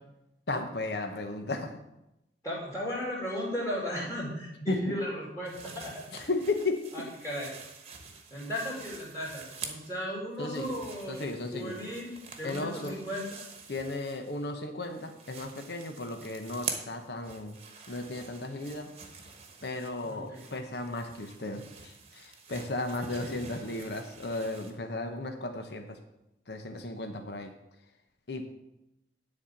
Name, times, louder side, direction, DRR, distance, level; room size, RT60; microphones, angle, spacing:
voice 1, 0.5-1.8 4.7-4.9 6.1-6.8 10.4-10.8 11.1-11.7 12.4-13.0 13.7-17.5 17.9-18.9 19.6-26.0 26.5-27.5 28.3-28.4, left 2 dB, 70° left, 5 dB, 1.0 m, -35 dB
voice 2, 2.4-6.0 6.9-7.5 8.3-13.5 20.0-20.4 22.9-23.4, equal, 20° left, -4 dB, 2.5 m, -36 dB
sound 1, 5.4-10.0 10.3-14.5 14.8-24.7, right 5 dB, 35° right, 1.1 m, -46 dB
10.5 x 4.3 x 7.1 m, 0.89 s
head